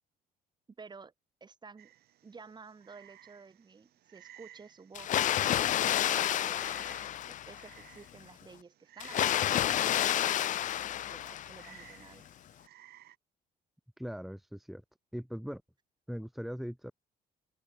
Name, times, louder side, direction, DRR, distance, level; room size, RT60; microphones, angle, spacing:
voice 1, 0.8-1.1 1.4-1.9 2.2-12.2, right 4 dB, 25° right, 2.2 m, -53 dB
Frog, 1.8-13.2, right 13 dB, 70° right, 5.9 m, -57 dB
Water, 5.0-7.8 9.0-11.8, left 12 dB, 50° left, 0.5 m, -30 dB
voice 2, 14.0-14.8 15.1-15.6 16.1-16.9, equal, ahead, 1.5 m, -40 dB
open air
cardioid pair, 110°, 17 cm